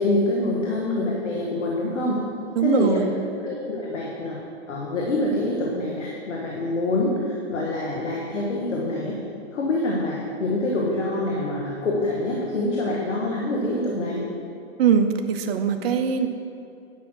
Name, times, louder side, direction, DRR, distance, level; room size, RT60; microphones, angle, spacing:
voice 1, 0.0-2.2 2.6-3.0 3.4-4.4 4.7-9.2 9.5-14.2, left 2 dB, 85° left, -3 dB, 1.7 m, -25 dB
voice 2, 2.6-3.1 14.8-16.3, right 7 dB, 55° right, 6 dB, 0.9 m, -21 dB
10.5 x 6.0 x 6.4 m, 2.6 s
hypercardioid pair, 125°, 36 cm